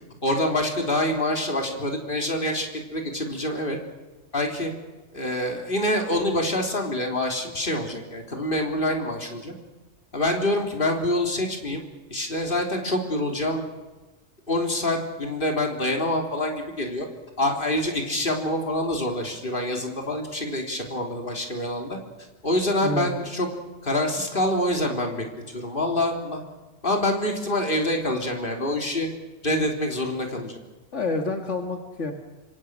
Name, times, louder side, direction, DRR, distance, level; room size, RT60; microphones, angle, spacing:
voice 1, 0.2-3.8 4.3-4.7 5.1-9.5 10.1-11.8 12.1-13.7 14.5-17.1 17.4-22.0 22.4-23.5 23.8-25.3 25.5-26.4 26.8-29.1 29.4-30.6, left 1 dB, 50° left, 2 dB, 3.9 m, -26 dB
voice 2, 30.9-32.1, left 3 dB, 80° left, 4 dB, 2.4 m, -28 dB
26.5 x 25.0 x 6.4 m, 1.2 s
omnidirectional pair, 1.2 m